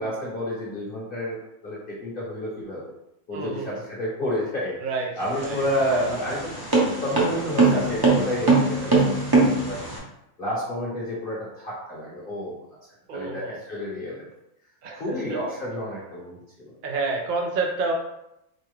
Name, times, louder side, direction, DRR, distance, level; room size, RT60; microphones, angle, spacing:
voice 1, 0.0-2.9 3.3-4.8 5.2-6.5 7.0-9.3 9.6-9.8 10.4-12.6 13.1-14.3 14.9-16.7, equal, 45° left, -6 dB, 0.9 m, -30 dB
voice 2, 3.3-3.8 4.8-5.1 5.4-5.6 13.1-13.6 14.8-15.4 16.8-17.9, right 3 dB, 80° right, 1 dB, 0.4 m, -29 dB
sound 1, 5.2-10.0, right 3 dB, 25° right, 0.5 m, -21 dB
4.6 x 2.3 x 3.1 m, 0.83 s
omnidirectional pair, 1.6 m